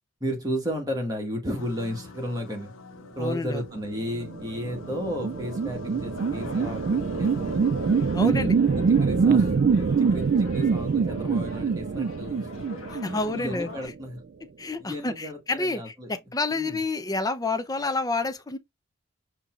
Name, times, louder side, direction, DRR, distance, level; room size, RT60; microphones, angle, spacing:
voice 1, 0.2-2.7 3.1-7.6 8.2-8.5 8.7-12.5 13.0-14.2 14.8-16.1 16.5-16.8, equal, 20° right, 1.5 m, -33 dB
sound 1, 1.6-8.2, left 4 dB, 65° left, 0.6 m, -44 dB
voice 2, 3.2-3.6 8.1-8.5 12.9-13.7 14.6-18.6, left 3 dB, 20° left, 0.5 m, -29 dB
sound 2, 4.1-13.9, right 5 dB, 50° right, 0.3 m, -24 dB
sound 3, 6.1-13.9, left 3 dB, 80° left, 1.2 m, -43 dB
5.3 x 2.9 x 2.4 m
head